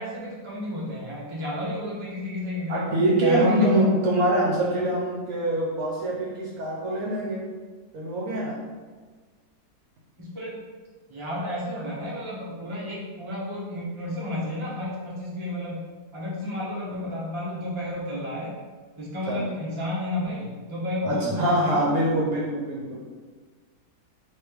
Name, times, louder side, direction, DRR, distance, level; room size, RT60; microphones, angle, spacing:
voice 1, 0.0-2.9 3.2-4.0 10.2-10.6 11.1-15.8 16.1-18.5 19.0-22.0, left 1 dB, 20° right, -7 dB, 1.0 m, -32 dB
voice 2, 2.7-7.4 7.9-8.6 19.3-19.4 21.0-23.0, right 1 dB, 65° right, -4 dB, 1.2 m, -24 dB
3.4 x 3.3 x 4.6 m, 1.4 s
omnidirectional pair, 1.8 m